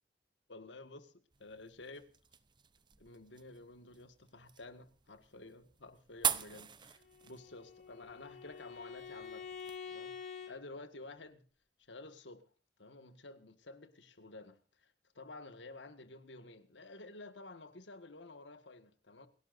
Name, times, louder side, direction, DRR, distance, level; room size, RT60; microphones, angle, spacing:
voice 1, 0.5-1.1 1.4-2.1 3.0-9.5 9.9-11.4 11.9-12.4 12.8-19.3, left 2 dB, 85° left, 1.8 m, -52 dB
sound 1, 1.3-9.8, right 8 dB, 25° right, 0.7 m, -43 dB
Bowed string instrument, 7.0-10.6, left 6 dB, 45° left, 3.3 m, -47 dB
28.5 x 12.0 x 2.6 m
head